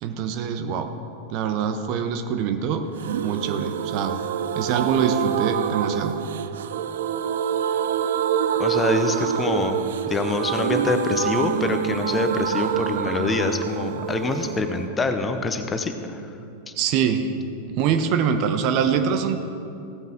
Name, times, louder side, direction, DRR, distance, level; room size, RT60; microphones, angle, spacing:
voice 1, 0.0-0.9 1.3-2.9 3.2-4.2 4.5-6.1 16.8-17.3 17.8-19.4, right 7 dB, 40° right, 7 dB, 0.9 m, -24 dB
sound 1, 3.0-16.6 16.9-17.0 17.2-17.3, right 9 dB, 60° right, 0.4 m, -26 dB
voice 2, 8.6-9.8 10.1-16.2 16.7-16.8, left 4 dB, 20° left, 7 dB, 0.8 m, -25 dB
16.5 x 9.1 x 3.7 m, 2.6 s
figure-of-eight pair, 90°, 0 cm